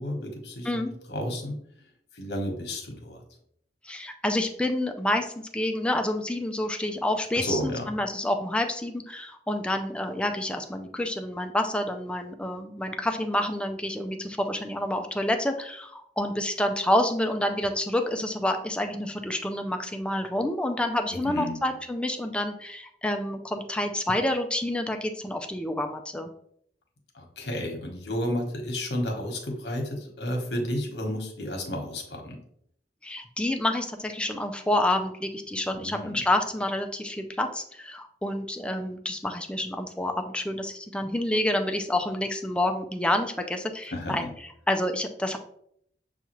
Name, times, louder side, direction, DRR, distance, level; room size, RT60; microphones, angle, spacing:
voice 1, 0.0-1.6 2.1-3.2 7.3-7.9 21.2-21.6 27.1-32.4 35.7-36.2 43.9-44.3, left 1 dB, 70° left, 2 dB, 1.1 m, -32 dB
voice 2, 3.8-26.3 33.0-44.3 44.7-45.4, left 1 dB, 5° left, 5 dB, 0.3 m, -28 dB
6.9 x 2.4 x 3.0 m, 0.69 s
head